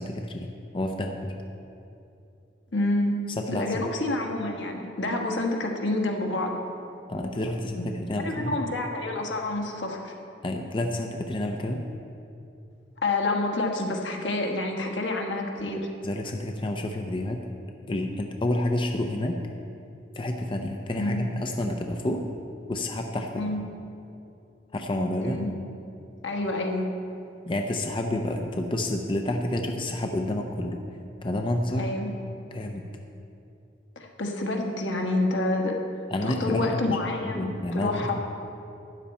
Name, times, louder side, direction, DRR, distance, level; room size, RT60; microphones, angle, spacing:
voice 1, 0.0-1.3 3.4-3.8 7.1-8.6 10.4-11.8 16.0-17.4 17.9-19.4 20.2-22.2 22.7-23.3 24.7-25.4 27.5-30.8 31.2-31.9 32.5-32.8 36.1-37.0 37.2-38.2, left 1 dB, 30° left, 3 dB, 0.6 m, -29 dB
voice 2, 2.7-3.2 3.5-6.6 7.7-7.9 8.2-10.1 13.0-15.8 21.0-21.3 23.4-23.6 25.2-25.5 26.2-26.9 31.8-32.1 33.9-35.8 36.2-38.2, left 2 dB, 75° left, 1 dB, 1.5 m, -28 dB
12.5 x 9.9 x 4.3 m, 2.7 s
head